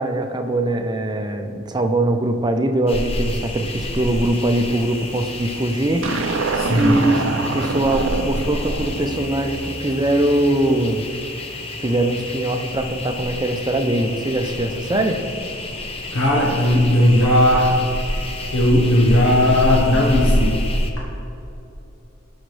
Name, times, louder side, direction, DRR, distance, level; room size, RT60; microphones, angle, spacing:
voice 1, 0.0-6.1 6.7-11.0 11.8-15.2, right 1 dB, 20° right, 5 dB, 0.6 m, -21 dB
sound 1, 2.9-20.9, left 1 dB, 30° left, 0.8 m, -28 dB
sound 2, 6.0-10.4, right 3 dB, 60° right, 0.6 m, -26 dB
voice 2, 6.5-6.9 16.1-17.8 18.5-20.6 21.0-21.1, left 1 dB, 75° left, -4 dB, 1.4 m, -17 dB
18.5 x 6.4 x 3.3 m, 2.8 s
head